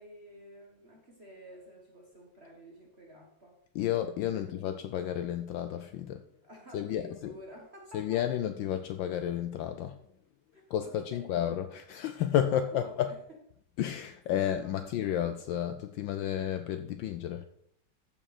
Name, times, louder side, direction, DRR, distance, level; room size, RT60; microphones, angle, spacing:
voice 1, 0.0-3.6 4.3-4.7 6.4-8.4 10.5-11.4 12.5-13.2 14.4-15.0, equal, 35° right, 1.6 m, -51 dB
voice 2, 3.7-6.2 6.7-7.0 7.9-10.0 10.7-13.1 13.8-17.5, left 10 dB, 75° left, 1.2 m, -31 dB
14.0 x 5.8 x 4.2 m
omnidirectional pair, 2.3 m